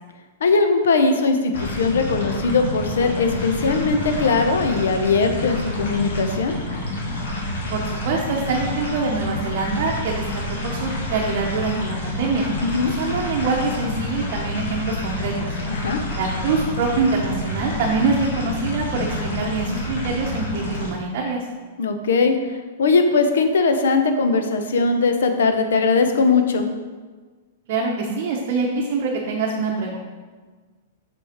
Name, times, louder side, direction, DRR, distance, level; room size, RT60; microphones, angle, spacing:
voice 1, 0.4-6.6 12.6-12.9 15.7-16.0 21.8-26.6, left 4 dB, 90° left, 7 dB, 0.8 m, -20 dB
sound 1, 1.5-20.9, left 1 dB, 70° left, 2.0 m, -28 dB
voice 2, 7.7-10.2 10.6-12.5 12.8-15.6 16.2-21.4 27.7-30.0, right 4 dB, 50° right, -2 dB, 0.9 m, -24 dB
6.2 x 4.8 x 4.4 m, 1.4 s
hypercardioid pair, 155°, 0 cm